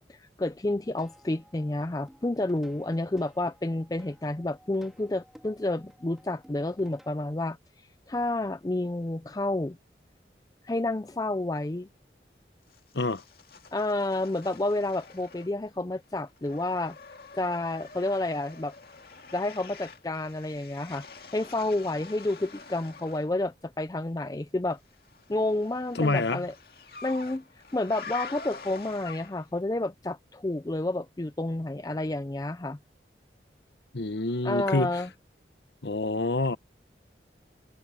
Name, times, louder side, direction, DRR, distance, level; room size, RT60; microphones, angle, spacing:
voice 1, 0.0-9.8 10.6-11.9 13.7-17.0 17.3-18.7 19.3-21.0 21.3-24.8 25.3-26.5 27.0-27.4 27.7-32.8 34.4-35.1, left 2 dB, 20° left, 0.4 m, -30 dB
Plucked string instrument, 0.8-7.3, equal, ahead, 3.6 m, -56 dB
sound 1, 12.7-15.8 16.0-23.3 24.9-29.6, left 4 dB, 55° left, 2.4 m, -46 dB
voice 2, 26.0-26.4 33.9-34.9 35.8-36.6, left 2 dB, 75° left, 1.1 m, -27 dB
head